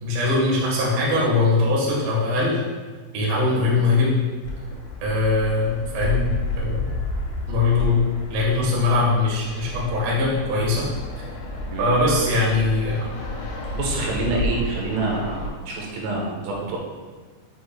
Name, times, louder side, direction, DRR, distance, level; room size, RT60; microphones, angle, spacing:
voice 1, 0.0-2.6 3.1-4.2 5.0-6.3 6.6-6.9 7.5-8.0 8.3-10.8 11.8-13.1, left 2 dB, 60° right, -5 dB, 2.8 m, -21 dB
Fixed-wing aircraft airplane, 4.4-15.5, left 2 dB, 70° left, 3.6 m, -31 dB
voice 2, 13.8-16.8, right 3 dB, 85° right, -3 dB, 3.5 m, -27 dB
7.9 x 6.1 x 2.3 m, 1.4 s
omnidirectional pair, 5.4 m